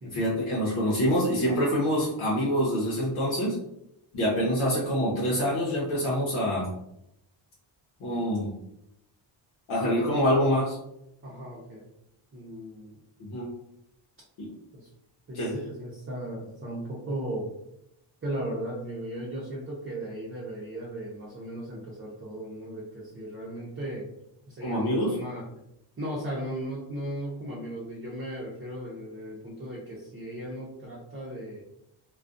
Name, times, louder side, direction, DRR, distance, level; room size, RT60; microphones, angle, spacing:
voice 1, 0.0-3.6 4.1-6.7 8.0-8.5 9.7-10.8 13.2-13.5 14.4-14.5 15.3-15.5 24.6-25.1, equal, 85° left, -6 dB, 0.9 m, -26 dB
voice 2, 9.8-10.2 11.2-11.8 12.3-13.0 14.7-14.9 15.3-17.5 18.2-24.1 24.5-25.4 26.0-31.6, right 1 dB, 25° right, -6 dB, 0.7 m, -36 dB
2.4 x 2.3 x 2.5 m, 0.81 s
cardioid pair, 90°, 49 cm